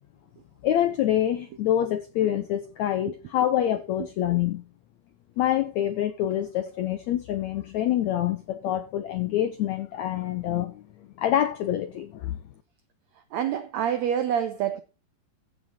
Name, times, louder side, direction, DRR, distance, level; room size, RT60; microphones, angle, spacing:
voice 1, 0.6-4.6 5.4-10.8 11.2-12.4, left 11 dB, 85° left, 1.6 m, -26 dB
voice 2, 13.3-14.8, right 9 dB, 85° right, 1.6 m, -26 dB
15.0 x 6.5 x 4.2 m
omnidirectional pair, 4.2 m